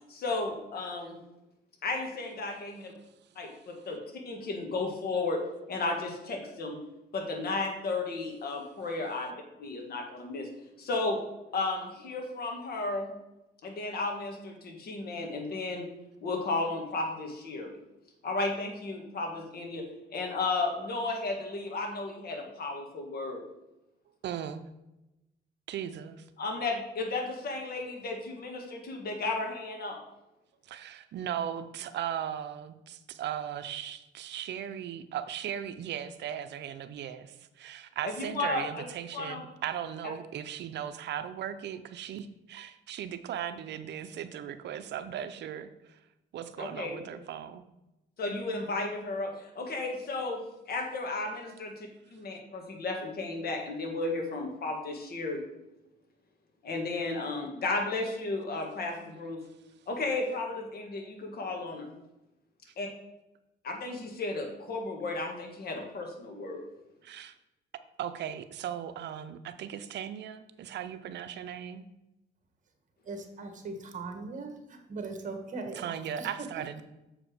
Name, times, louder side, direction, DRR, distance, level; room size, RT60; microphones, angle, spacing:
voice 1, 0.1-1.2 1.8-2.9 3.4-3.5 3.9-5.4 5.7-6.8 7.1-9.3 9.6-10.5 10.8-11.2 11.5-13.1 13.6-15.9 16.2-17.8 18.2-19.9 20.1-23.4 26.4-30.0 38.0-38.9 39.1-39.4 46.6-47.0 48.2-55.4 56.6-59.4 59.9-61.9 62.8-62.9 63.6-66.6, left 3 dB, 55° left, 2 dB, 1.9 m, -34 dB
voice 2, 24.2-24.6 25.7-26.2 30.7-46.0 46.3-47.6 67.0-67.3 68.0-71.8 75.7-76.8, right 9 dB, 65° right, 10 dB, 0.6 m, -37 dB
voice 3, 73.1-74.5 74.9-75.8, right 3 dB, 40° right, 5 dB, 1.5 m, -39 dB
7.2 x 4.9 x 5.0 m, 0.94 s
cardioid pair, 90°, 19 cm